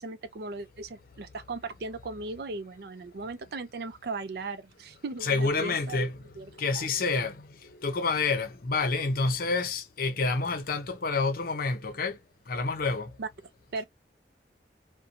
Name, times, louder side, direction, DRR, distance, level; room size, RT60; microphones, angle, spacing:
voice 1, 0.0-6.1 6.4-6.9 13.2-13.3 13.7-13.8, right 3 dB, 60° right, 0.5 m, -37 dB
voice 2, 5.2-6.1 6.5-12.2 12.5-13.1, left 3 dB, 55° left, 0.7 m, -28 dB
2.6 x 2.1 x 2.7 m
head